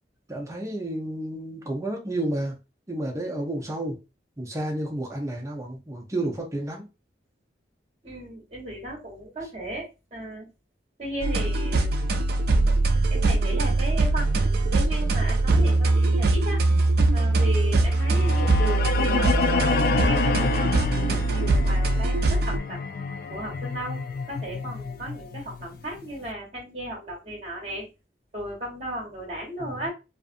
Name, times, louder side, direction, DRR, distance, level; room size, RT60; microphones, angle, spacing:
voice 1, 0.3-2.6 2.9-4.0 4.4-6.9 29.6-29.9, right 1 dB, 15° right, 0.6 m, -31 dB
voice 2, 8.0-10.5 11.0-11.9 13.1-16.6 17.1-22.8 23.3-27.9 28.3-29.9, right 1 dB, 35° right, 1.1 m, -35 dB
sound 1, 11.2-22.6, right 2 dB, 60° right, 0.4 m, -22 dB
sound 2, 17.9-26.0, left 4 dB, 55° left, 0.3 m, -28 dB
2.5 x 2.5 x 2.5 m
head